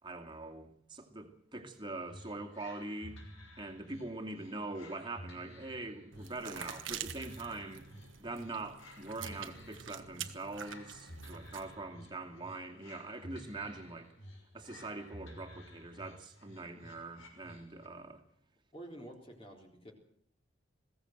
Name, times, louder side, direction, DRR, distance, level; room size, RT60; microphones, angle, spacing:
voice 1, 0.0-3.2 3.6-7.9 8.2-14.1 14.5-18.2, right 2 dB, 25° right, 2.4 m, -43 dB
sound 1, 2.1-18.0, equal, 75° left, 6.0 m, -53 dB
sound 2, 6.1-11.8, right 9 dB, 65° right, 1.4 m, -46 dB
voice 2, 18.7-19.9, right 1 dB, 25° left, 3.8 m, -49 dB
21.0 x 16.5 x 7.9 m
head